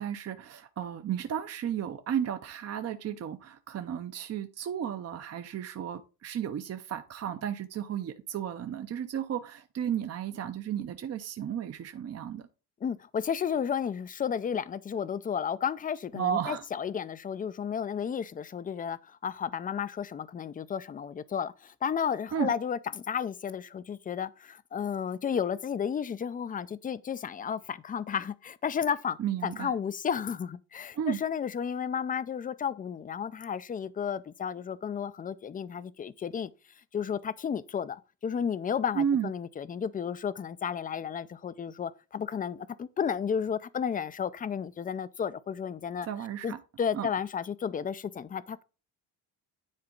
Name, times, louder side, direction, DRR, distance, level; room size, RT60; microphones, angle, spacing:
voice 1, 0.0-12.4 16.1-16.6 22.3-22.5 29.2-29.7 30.9-31.2 39.0-39.3 46.0-46.6 46.9-47.1, right 9 dB, 35° right, 0.6 m, -33 dB
voice 2, 12.8-36.5 36.9-46.1 46.4-48.6, left 7 dB, 20° left, 0.3 m, -33 dB
9.8 x 4.3 x 3.8 m
cardioid pair, 145°, 42 cm